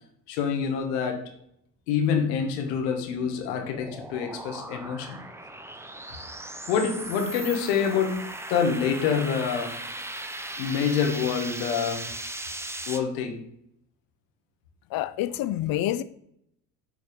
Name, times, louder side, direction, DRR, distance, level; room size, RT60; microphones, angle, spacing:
voice 1, 0.3-1.3 1.9-5.2 6.7-8.2 8.5-9.8 10.6-12.1 12.9-13.4, left 6 dB, 75° left, 1.4 m, -26 dB
sound 1, 2.7-13.0, right 1 dB, 5° right, 0.6 m, -38 dB
voice 2, 14.9-16.0, left 13 dB, 45° left, 0.6 m, -27 dB
7.3 x 4.0 x 4.6 m
hypercardioid pair, 70°, 48 cm